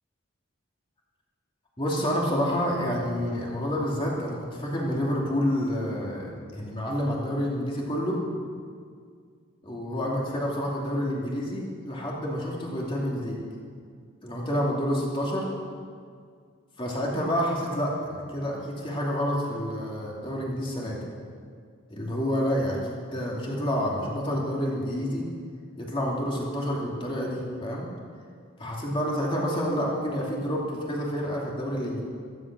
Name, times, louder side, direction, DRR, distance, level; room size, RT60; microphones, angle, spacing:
voice 1, 1.8-8.2 9.6-13.4 14.2-15.5 16.8-21.0 21.9-25.2 25.8-27.9 28.6-32.0, equal, 25° left, -3 dB, 2.6 m, -28 dB
15.0 x 13.5 x 6.1 m, 2.1 s
head